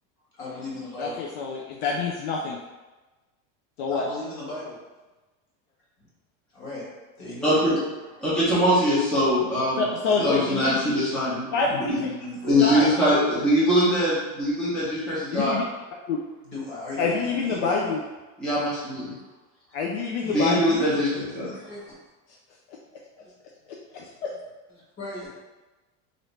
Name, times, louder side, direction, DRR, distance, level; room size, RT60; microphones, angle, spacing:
voice 1, 0.4-1.2 3.9-4.8 6.5-6.8 7.2-7.6 10.1-10.6 11.9-12.8 14.6-15.0 16.4-17.9 20.2-21.0 21.6-21.9 23.2-23.3 25.0-25.3, left 2 dB, 30° left, -7 dB, 1.2 m, -36 dB
voice 2, 1.0-2.6 3.8-4.0 9.8-10.9 11.5-12.3 12.6-12.8 15.3-15.6 16.1-16.2 17.0-18.0 19.7-20.6 23.9-24.3, left 4 dB, 60° left, -2 dB, 0.5 m, -27 dB
voice 3, 7.4-7.8 8.2-9.9 10.2-12.0 12.5-15.6 18.4-19.1 20.3-21.5, equal, ahead, -11 dB, 0.7 m, -22 dB
3.1 x 2.6 x 3.1 m, 1.2 s
supercardioid pair, 165°, 41 cm